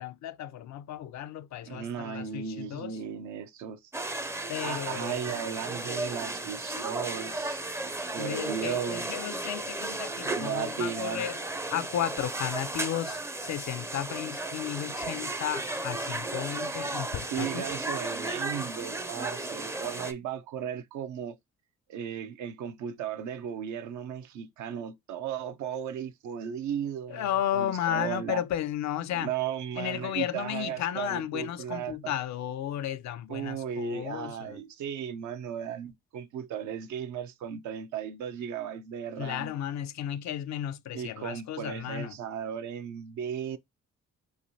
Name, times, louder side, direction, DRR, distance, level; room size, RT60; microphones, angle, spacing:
voice 1, 0.0-3.0 4.5-5.5 8.2-11.4 11.7-17.7 27.1-29.3 29.7-34.6 39.2-42.1, left 11 dB, 70° left, 0.5 m, -34 dB
voice 2, 1.7-3.8 4.6-7.6 8.1-9.1 10.3-11.3 16.8-16.9 17.3-21.4 21.9-27.3 27.5-28.4 29.1-32.1 33.3-39.5 40.9-43.6, right 8 dB, 80° right, 0.6 m, -35 dB
sound 1, 3.9-20.1, right 2 dB, 10° right, 0.4 m, -35 dB
3.5 x 3.2 x 2.6 m
cardioid pair, 80°, 29 cm